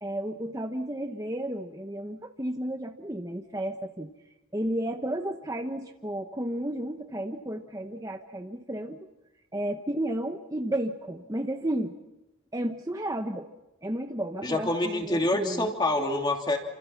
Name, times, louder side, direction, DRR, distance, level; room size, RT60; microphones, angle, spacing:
voice 1, 0.0-4.1 4.5-9.1 9.5-11.9 12.5-13.5 13.8-15.7, right 1 dB, 15° right, 4 dB, 1.0 m, -32 dB
voice 2, 14.4-16.6, left 1 dB, 20° left, 2 dB, 3.0 m, -26 dB
29.5 x 26.5 x 6.0 m, 0.99 s
head